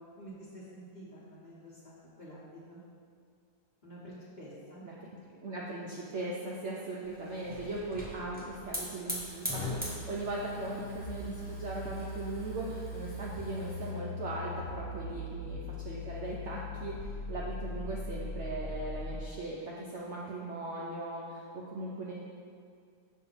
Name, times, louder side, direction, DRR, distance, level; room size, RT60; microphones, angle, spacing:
voice 1, 0.0-2.8 3.8-4.9 14.8-15.2, equal, 30° left, -8 dB, 1.1 m, -49 dB
voice 2, 5.3-22.1, right 2 dB, 65° right, -4 dB, 0.7 m, -39 dB
Hiss / Fire, 7.0-13.9, left 1 dB, 10° right, 0.6 m, -42 dB
sound 1, 9.8-19.4, left 2 dB, 80° left, 1.3 m, -40 dB
6.8 x 2.8 x 5.5 m, 2.2 s
omnidirectional pair, 1.8 m